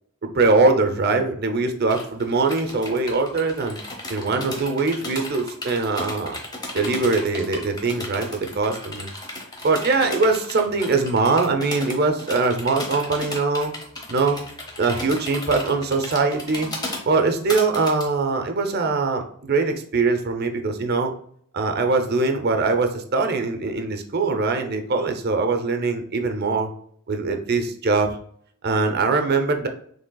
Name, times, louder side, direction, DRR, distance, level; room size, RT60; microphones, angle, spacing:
voice 1, 0.2-3.8 4.1-6.4 6.7-9.1 9.6-13.7 14.1-14.4 14.8-16.7 17.1-21.1 21.5-26.7 27.1-28.2 28.6-29.7, right 3 dB, 45° right, 6 dB, 0.6 m, -22 dB
sound 1, 1.9-18.0, left 1 dB, 20° left, 0.9 m, -34 dB
6.5 x 3.3 x 2.3 m, 0.62 s
head